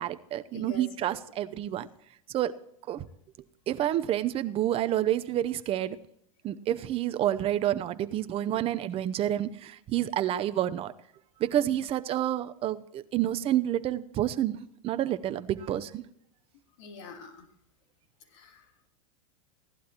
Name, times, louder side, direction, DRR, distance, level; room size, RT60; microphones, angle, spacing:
voice 1, 0.0-1.9 2.3-2.5 2.9-3.0 3.7-6.0 6.4-10.9 11.4-16.0, right 12 dB, 35° right, 0.8 m, -29 dB
voice 2, 0.5-1.1 16.8-17.5 18.3-18.6, left 2 dB, 65° left, 3.3 m, -44 dB
16.5 x 11.5 x 3.0 m
hypercardioid pair, 120°, 17 cm